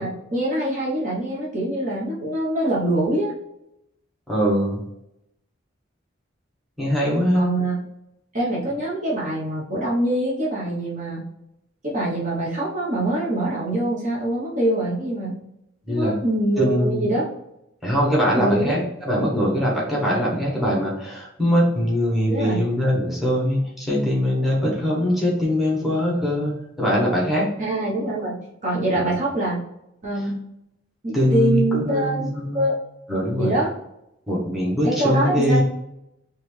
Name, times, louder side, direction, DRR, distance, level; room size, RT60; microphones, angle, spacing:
voice 1, 0.0-3.3 7.3-7.8 8.3-11.2 11.8-15.4 15.9-17.2 18.3-18.8 22.3-22.6 27.6-28.3 28.6-29.6 30.0-30.3 31.0-32.7 33.4-33.7 34.8-35.6, right 1 dB, 40° right, -5 dB, 1.1 m, -24 dB
voice 2, 4.3-4.8 6.8-7.4 15.9-16.1 16.6-17.1 17.8-27.4 29.0-29.1 31.1-32.6 33.1-33.6 34.3-35.6, equal, ahead, -5 dB, 1.3 m, -22 dB
4.2 x 3.2 x 3.3 m, 0.84 s
head